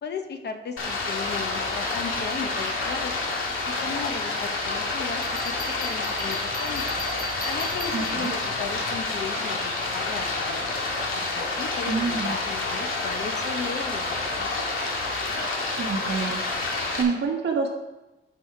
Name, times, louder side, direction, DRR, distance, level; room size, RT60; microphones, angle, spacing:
voice 1, 0.0-3.2 3.6-6.8 7.5-10.7 11.1-14.6, left 5 dB, 50° left, 6 dB, 0.9 m, -36 dB
Stream, 0.8-17.0, left 3 dB, 75° left, 1.9 m, -28 dB
Bell, 5.2-8.6, left 3 dB, 20° left, 1.3 m, -38 dB
voice 2, 7.9-8.3 11.9-12.3 15.8-16.4 16.9-17.7, right 5 dB, 55° right, 1 dB, 1.6 m, -27 dB
12.0 x 4.9 x 4.9 m, 1.0 s
wide cardioid pair, 170°, 21 cm